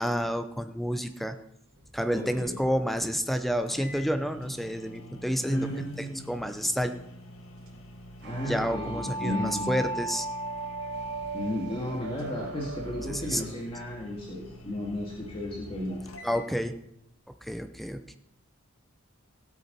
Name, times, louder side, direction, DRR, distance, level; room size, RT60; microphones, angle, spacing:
voice 1, 0.0-1.4 1.9-5.7 6.0-6.9 8.4-10.3 13.1-13.4 16.2-16.7 17.4-18.1, equal, ahead, 8 dB, 0.7 m, -29 dB
sound 1, 1.6-16.1, equal, 75° right, 3.4 m, -52 dB
voice 2, 2.1-2.6 5.4-6.2 8.2-9.8 11.3-16.0, left 1 dB, 25° left, -3 dB, 2.1 m, -34 dB
sound 2, 3.3-3.4 3.7-16.5, equal, 70° left, 1.7 m, -48 dB
sound 3, 8.2-13.4, right 2 dB, 55° right, 0.9 m, -36 dB
16.0 x 8.7 x 4.1 m, 0.77 s
head